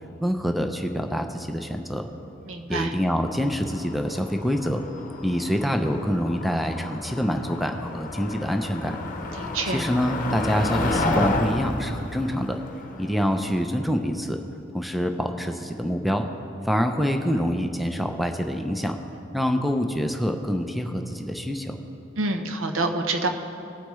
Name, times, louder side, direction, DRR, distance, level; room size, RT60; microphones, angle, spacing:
voice 1, 0.2-2.1 2.7-4.8 5.2-9.0 9.7-12.6 13.0-14.4 14.7-16.3 16.6-19.0 19.3-21.8, equal, ahead, 5 dB, 0.5 m, -26 dB
voice 2, 2.5-2.9 9.4-9.8 22.2-23.3, right 2 dB, 85° right, 5 dB, 0.9 m, -27 dB
Motor vehicle (road), 3.2-13.6, left 2 dB, 45° left, 0.9 m, -31 dB
19.0 x 8.1 x 3.1 m, 2.7 s
head